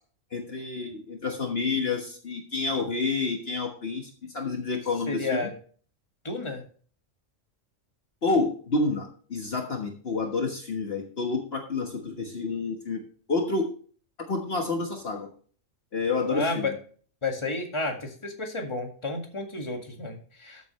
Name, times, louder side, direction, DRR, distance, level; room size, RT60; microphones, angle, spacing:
voice 1, 0.3-5.5 8.2-13.0 13.3-13.7 14.2-15.3 15.9-16.7, left 3 dB, 50° left, 2 dB, 1.6 m, -29 dB
voice 2, 5.1-5.5 6.2-6.7 16.3-16.7 17.2-20.7, left 3 dB, 20° left, 2 dB, 1.9 m, -31 dB
13.5 x 8.2 x 3.2 m, 0.43 s
omnidirectional pair, 1.3 m